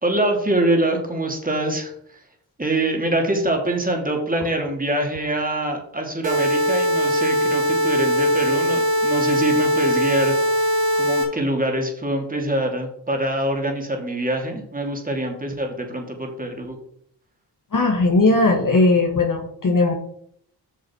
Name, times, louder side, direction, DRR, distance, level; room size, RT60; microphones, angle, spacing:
voice 1, 0.0-1.9 2.6-10.3 10.6-16.8, right 1 dB, 20° right, 2 dB, 2.8 m, -24 dB
sound 1, 6.2-11.2, equal, 70° right, 2.7 m, -20 dB
voice 2, 17.7-19.9, left 2 dB, 45° left, 1 dB, 1.9 m, -18 dB
8.0 x 6.4 x 4.6 m, 0.68 s
cardioid pair, 60°, 45 cm